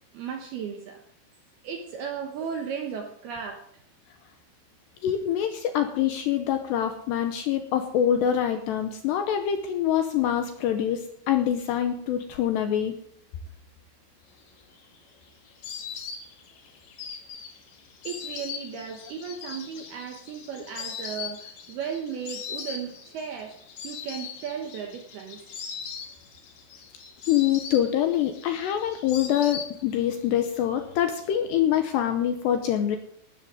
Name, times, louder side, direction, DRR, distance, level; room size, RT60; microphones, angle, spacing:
voice 1, 0.1-1.0 1.6-3.8 18.0-23.6 23.8-25.4, right 7 dB, 75° right, 4 dB, 2.4 m, -35 dB
voice 2, 5.0-13.0 27.3-33.0, left 10 dB, 80° left, 6 dB, 2.6 m, -25 dB
Insect, 14.5-30.2 30.4-31.3, left 7 dB, 55° left, 2.2 m, -40 dB
16.0 x 12.5 x 3.7 m, 0.69 s
omnidirectional pair, 5.9 m